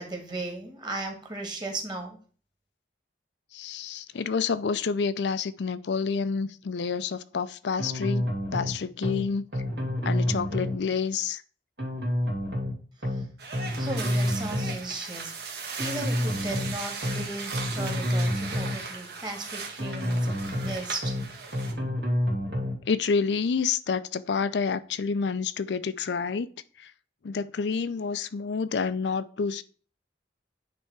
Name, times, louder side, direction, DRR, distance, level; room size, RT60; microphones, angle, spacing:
voice 1, 0.0-2.2 13.1-13.2 13.8-15.3 15.8-21.1, right 2 dB, 25° right, 1.7 m, -36 dB
voice 2, 3.5-8.3 8.5-9.4 10.0-11.4 22.9-26.5 26.8-26.9 27.2-29.6, left 5 dB, 75° left, 0.5 m, -28 dB
sound 1, 7.8-8.7 9.0-9.2 9.5-10.8 11.8-12.7 13.0-13.2 13.5-14.8 15.8-16.7 17.0-17.2 17.5-18.8 19.8-20.7 21.0-21.2 21.5-22.8, left 1 dB, 80° right, 2.6 m, -28 dB
sound 2, 13.4-21.7, right 4 dB, 65° right, 1.5 m, -38 dB
9.1 x 3.4 x 4.6 m
head